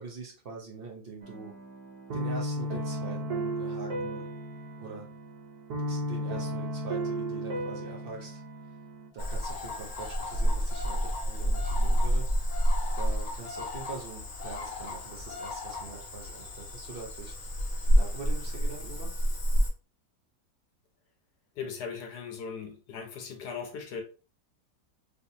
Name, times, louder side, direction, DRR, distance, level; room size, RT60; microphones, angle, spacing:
voice 1, 0.0-1.6 2.1-4.3 4.8-5.1 5.9-8.4 9.1-12.3 13.0-17.3 17.9-19.2, right 4 dB, 55° right, 0.6 m, -43 dB
sound 1, 1.2-9.1, right 1 dB, 70° right, 1.3 m, -35 dB
Cricket / Frog, 9.2-19.7, equal, 45° left, 0.6 m, -29 dB
voice 2, 21.6-24.0, left 6 dB, 70° left, 1.2 m, -38 dB
3.3 x 2.9 x 2.7 m
omnidirectional pair, 2.0 m